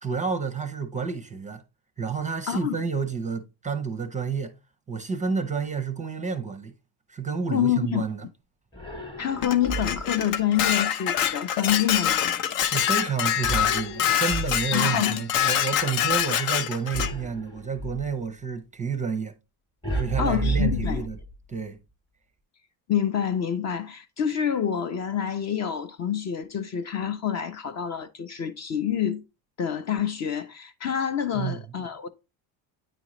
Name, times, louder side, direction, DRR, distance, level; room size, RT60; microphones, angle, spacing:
voice 1, 0.0-1.6 2.0-4.5 4.9-6.7 7.1-8.3 12.6-19.3 19.9-21.2 21.5-21.8 31.3-31.6, right 6 dB, 15° right, 0.5 m, -30 dB
voice 2, 7.5-8.0 9.2-12.3 14.7-15.2 20.2-21.0 22.9-29.2 29.6-32.1, left 9 dB, 40° left, 0.5 m, -27 dB
sound 1, 8.7-10.2 13.4-15.0 16.9-18.1 19.8-21.5, right 2 dB, 10° left, 0.9 m, -31 dB
Dishes pots and pans, 9.4-17.1, left 10 dB, 70° left, 0.7 m, -25 dB
9.0 x 3.7 x 3.0 m
cardioid pair, 130°, 46 cm